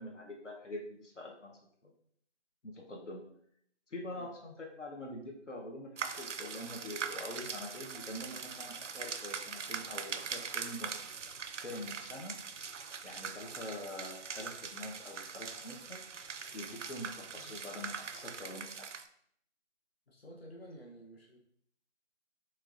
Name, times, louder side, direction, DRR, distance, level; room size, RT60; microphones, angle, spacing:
voice 1, 0.0-1.9 2.6-3.2 3.9-10.9 11.6-12.3 13.0-16.0 16.5-18.9, left 1 dB, 85° left, 0 dB, 0.9 m, -45 dB
sound 1, 6.0-19.1, right 6 dB, 85° right, 0.5 m, -42 dB
voice 2, 20.1-21.4, equal, 55° left, -1 dB, 1.0 m, -52 dB
4.4 x 3.1 x 2.5 m, 0.67 s
figure-of-eight pair, 165°, 35 cm